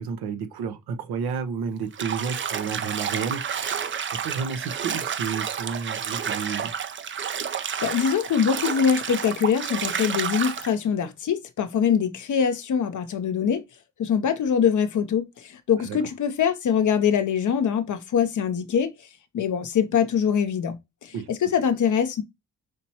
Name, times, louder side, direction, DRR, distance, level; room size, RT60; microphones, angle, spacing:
voice 1, 0.0-3.9 4.2-6.7 15.8-16.0 21.1-21.5, right 6 dB, 80° right, 0.8 m, -31 dB
Bathtub (filling or washing), 1.9-10.7, right 7 dB, 35° right, 0.5 m, -30 dB
voice 2, 7.8-13.6 14.0-18.9 19.3-22.2, left 7 dB, 55° left, 0.7 m, -23 dB
5.0 x 3.0 x 2.8 m
supercardioid pair, 55°, 37 cm